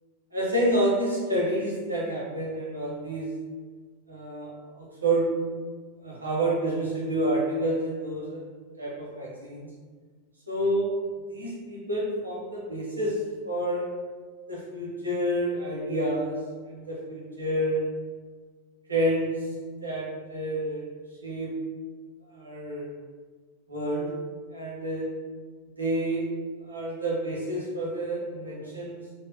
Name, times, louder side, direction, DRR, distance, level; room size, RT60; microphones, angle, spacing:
voice 1, 0.3-3.3 4.1-4.5 4.8-5.3 6.0-8.4 8.8-9.7 10.5-10.9 11.3-13.2 13.4-13.9 14.5-16.4 16.7-17.9 18.9-19.4 19.8-20.9 21.2-21.5 22.3-22.9 23.7-24.1 24.5-25.1 25.8-26.3 26.7-29.0, right 1 dB, 80° right, -4 dB, 0.9 m, -28 dB
2.9 x 2.3 x 3.2 m, 1.5 s
figure-of-eight pair, 90°, 0 cm